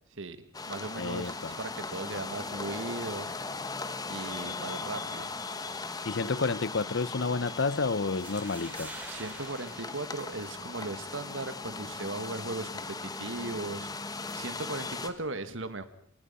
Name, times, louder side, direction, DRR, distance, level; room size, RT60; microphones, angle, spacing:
voice 1, 0.1-3.3 4.1-5.3 9.1-13.9 14.3-15.8, right 2 dB, 70° right, 11 dB, 1.7 m, -38 dB
sound 1, 0.5-15.1, left 3 dB, 20° left, 1.1 m, -38 dB
voice 2, 1.0-1.5 6.0-8.9, left 4 dB, 60° left, 18 dB, 0.7 m, -30 dB
sound 2, 7.9-10.9, right 2 dB, 10° right, 2.8 m, -47 dB
27.0 x 18.5 x 5.6 m, 0.70 s
head